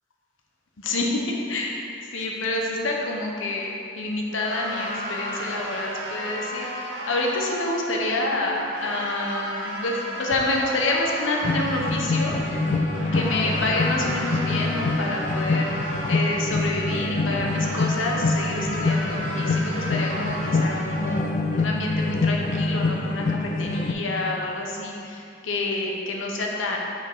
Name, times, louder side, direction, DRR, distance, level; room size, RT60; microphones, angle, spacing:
voice 1, 0.8-1.2 1.5-1.9 2.1-12.3 13.1-15.7 16.1-26.8, left 2 dB, 90° left, 0 dB, 0.8 m, -28 dB
sound 1, 4.4-21.2, equal, 85° right, 0.9 m, -34 dB
sound 2, 11.4-23.9, left 3 dB, 40° left, 0.3 m, -25 dB
5.9 x 5.3 x 3.7 m, 2.5 s
head